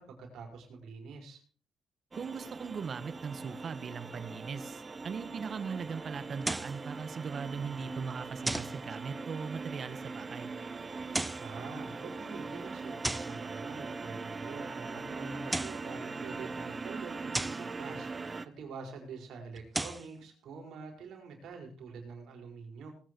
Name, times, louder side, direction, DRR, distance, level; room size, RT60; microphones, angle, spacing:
voice 1, 0.0-1.4 11.4-22.9, right 4 dB, 75° right, 3 dB, 5.0 m, -46 dB
sound 1, 2.1-18.5, right 4 dB, 30° right, 1.0 m, -41 dB
voice 2, 2.1-10.5, right 6 dB, 50° right, 13 dB, 1.5 m, -39 dB
sound 2, 6.4-6.8 8.5-8.8 11.0-11.5 13.0-13.4 15.3-15.9 17.3-17.7 19.6-20.1, right 2 dB, 10° right, 0.6 m, -35 dB
19.0 x 9.3 x 4.7 m, 0.41 s
cardioid pair, 90°, 0 cm